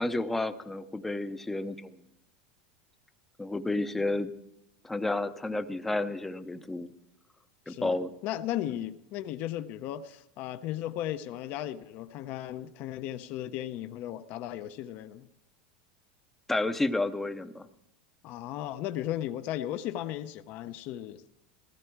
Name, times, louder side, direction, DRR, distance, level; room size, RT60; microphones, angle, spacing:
voice 1, 0.0-1.9 3.4-4.3 4.8-6.9 7.7-8.1 16.5-17.7, left 2 dB, 5° left, 10 dB, 0.6 m, -31 dB
voice 2, 7.7-15.3 18.2-21.2, left 12 dB, 45° left, 10 dB, 0.6 m, -36 dB
16.0 x 13.5 x 4.6 m, 0.84 s
supercardioid pair, 160°, 4 cm